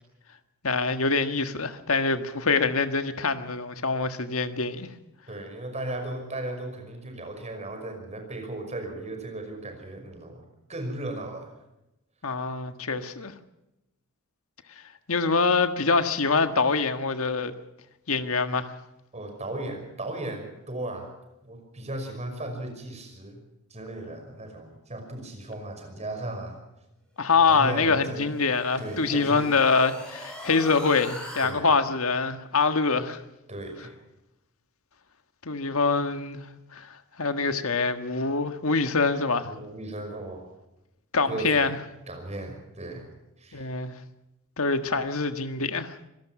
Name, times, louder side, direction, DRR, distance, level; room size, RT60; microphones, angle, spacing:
voice 1, 0.6-4.9 12.2-13.3 15.1-17.5 18.1-18.7 27.2-33.2 35.4-36.4 36.7-36.9 37.2-39.5 41.1-41.8 43.5-43.9 44.6-46.0, left 4 dB, 70° left, 9 dB, 1.6 m, -25 dB
voice 2, 5.3-11.5 19.1-21.1 21.4-23.4 23.7-26.6 27.4-28.4 28.8-29.5 31.4-31.7 33.5-33.9 39.4-40.4 41.2-41.7 42.1-43.0 43.4-43.7, right 2 dB, 30° right, 5 dB, 5.7 m, -36 dB
sound 1, 27.5-31.5, equal, 5° left, 7.4 m, -42 dB
25.5 x 18.0 x 6.1 m, 0.91 s
head